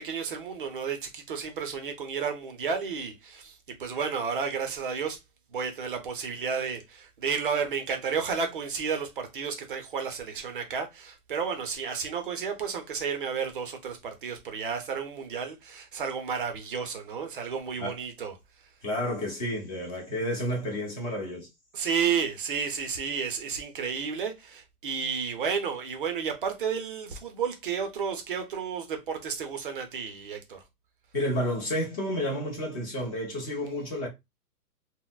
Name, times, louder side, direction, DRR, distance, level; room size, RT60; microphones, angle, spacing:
voice 1, 0.0-5.2 5.5-18.3 21.7-30.6, right 6 dB, 35° right, 0.5 m, -32 dB
voice 2, 18.8-21.5 31.1-34.1, equal, 25° left, 0.7 m, -30 dB
3.9 x 2.0 x 2.2 m
hypercardioid pair, 160°, 47 cm